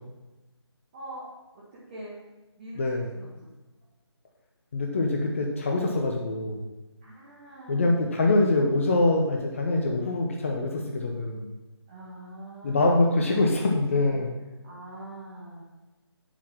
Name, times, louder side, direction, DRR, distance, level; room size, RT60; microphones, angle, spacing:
voice 1, 0.9-1.3 1.5-2.2 2.6-3.3 7.0-8.1 11.9-13.6 13.9-14.2 14.6-15.6, right 1 dB, 20° right, -8 dB, 1.7 m, -43 dB
voice 2, 2.7-3.1 4.7-6.7 7.7-11.5 12.6-14.3, left 2 dB, 30° left, 0 dB, 0.9 m, -24 dB
8.5 x 5.7 x 5.9 m, 1.1 s
figure-of-eight pair, 155°, 15 cm